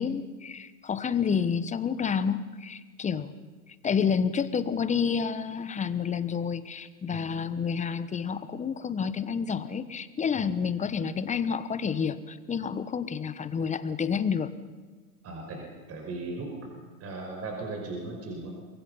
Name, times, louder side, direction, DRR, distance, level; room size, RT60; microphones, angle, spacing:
voice 1, 0.0-3.3 3.8-14.5, left 6 dB, 15° left, 13 dB, 1.1 m, -29 dB
voice 2, 15.2-16.5 17.0-18.6, right 2 dB, 30° right, 1 dB, 5.6 m, -37 dB
28.5 x 23.0 x 5.6 m, 1.3 s
hypercardioid pair, 110°, 46 cm